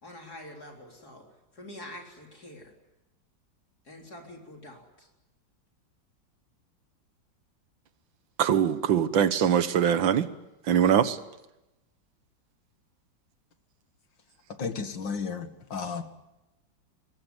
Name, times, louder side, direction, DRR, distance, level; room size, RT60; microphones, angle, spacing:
voice 1, 0.0-1.3 1.5-2.7 3.8-5.1, left 1 dB, 55° left, 4.4 m, -46 dB
voice 2, 8.4-10.3 10.7-11.2, right 9 dB, 80° right, 1.9 m, -22 dB
voice 3, 14.6-16.0, left 5 dB, 75° left, 2.6 m, -33 dB
24.5 x 20.0 x 9.6 m
omnidirectional pair, 2.1 m